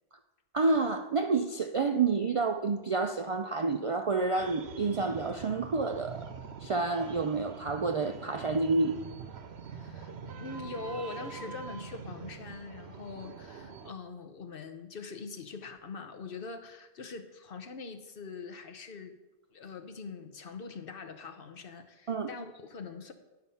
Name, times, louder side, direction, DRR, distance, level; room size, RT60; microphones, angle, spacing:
voice 1, 0.5-6.3 6.6-9.0 22.1-22.3, right 3 dB, 50° right, 6 dB, 0.4 m, -29 dB
sound 1, 4.4-13.9, right 6 dB, 85° right, 1.0 m, -44 dB
voice 2, 9.7-19.2 19.5-23.1, left 4 dB, 60° left, 6 dB, 1.0 m, -43 dB
11.0 x 5.7 x 5.6 m, 1.1 s
omnidirectional pair, 1.1 m